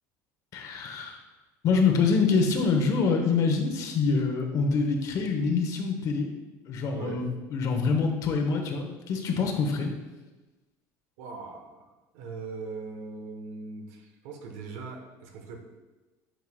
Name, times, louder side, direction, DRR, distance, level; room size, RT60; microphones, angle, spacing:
voice 1, 0.5-1.2 1.6-6.3 6.7-7.3 7.5-9.9, left 4 dB, 45° left, 4 dB, 0.9 m, -25 dB
voice 2, 6.9-7.2 11.2-15.6, right 4 dB, 90° right, 3 dB, 1.0 m, -40 dB
9.1 x 4.6 x 2.3 m, 1.1 s
cardioid pair, 145°, 8 cm